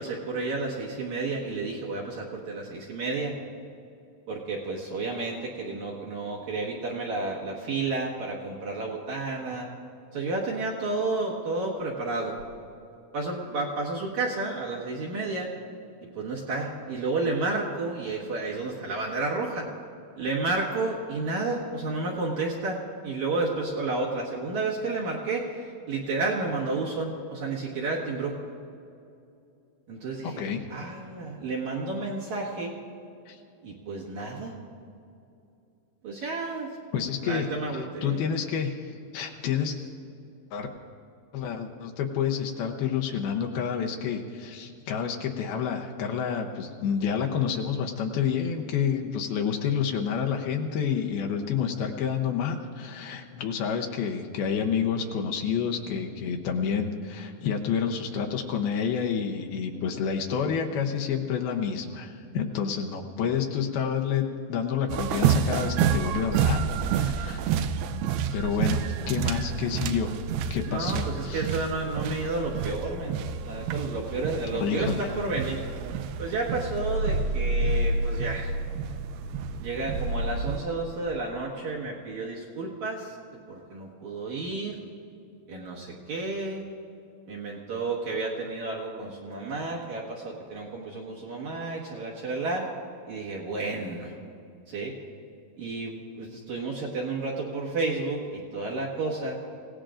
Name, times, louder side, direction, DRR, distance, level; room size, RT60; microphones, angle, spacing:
voice 1, 0.0-3.3 4.3-9.7 10.1-12.3 13.1-15.5 16.2-19.7 20.2-28.4 29.9-32.7 33.6-34.5 36.0-36.7 37.2-38.2 68.6-69.1 70.7-73.2 73.4-75.6 76.2-78.5 79.6-83.2 83.5-84.8 85.5-86.6 87.3-92.7 93.1-94.1 94.7-94.9 95.6-99.4, right 3 dB, 60° right, -3 dB, 2.3 m, -31 dB
voice 2, 30.2-30.6 33.3-33.4 36.2-36.3 36.9-39.8 40.5-40.7 41.3-67.5 68.3-70.1 70.5-71.7 74.5-75.1, left 7 dB, 75° left, 2 dB, 2.5 m, -29 dB
sound 1, 64.9-80.6, right 5 dB, 80° right, 2.2 m, -28 dB
26.0 x 17.5 x 2.5 m, 2.6 s
omnidirectional pair, 4.8 m